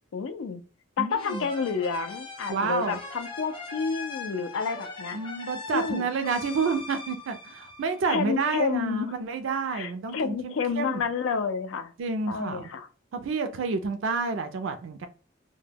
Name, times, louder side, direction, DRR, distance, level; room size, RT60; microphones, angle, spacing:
voice 1, 0.1-0.6 1.0-5.2 5.7-6.0 8.1-9.1 9.7-11.9 12.3-12.9, left 5 dB, 85° left, 0.4 m, -30 dB
voice 2, 1.0-1.5 2.5-3.0 5.1-11.0 12.0-12.6 13.1-15.1, right 4 dB, 75° right, 0.4 m, -29 dB
sound 1, 1.1-8.5, left 4 dB, 25° left, 0.5 m, -40 dB
2.1 x 2.1 x 3.2 m
head